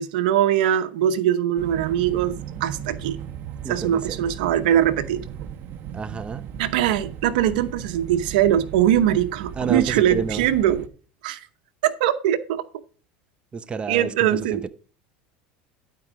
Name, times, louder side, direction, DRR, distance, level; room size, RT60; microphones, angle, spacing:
voice 1, 0.0-3.2 3.7-5.2 6.6-10.8 11.2-11.4 11.8-12.6 13.9-14.6, right 11 dB, 75° right, 0.9 m, -21 dB
sound 1, 1.6-10.9, right 9 dB, 50° right, 1.0 m, -36 dB
voice 2, 3.6-4.4 5.9-6.4 9.6-10.5 13.5-14.7, right 5 dB, 20° right, 0.6 m, -30 dB
12.0 x 4.7 x 5.1 m
hypercardioid pair, 95°, 5 cm